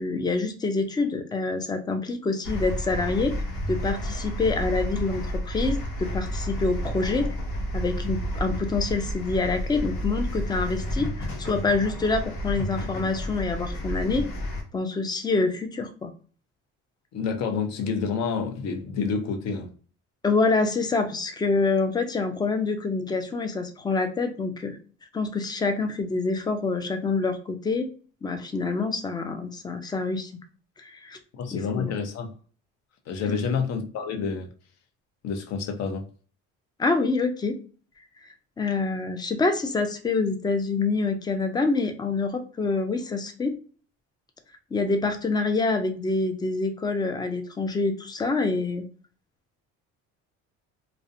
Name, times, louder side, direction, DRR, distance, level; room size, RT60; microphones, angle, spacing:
voice 1, 0.0-3.3 3.7-7.3 7.7-14.3 14.7-16.1 20.2-24.8 25.1-27.9 28.2-30.3 30.8-31.2 31.5-31.9 33.2-33.5 36.8-37.6 38.6-43.5 44.7-48.8, left 3 dB, 15° left, 0.3 m, -26 dB
sound 1, 2.4-14.6, equal, 80° left, 0.9 m, -31 dB
voice 2, 17.1-19.7 31.3-32.3 33.1-34.5 35.2-36.1, left 5 dB, 55° left, 0.6 m, -28 dB
2.3 x 2.1 x 2.6 m
cardioid pair, 105°, 31 cm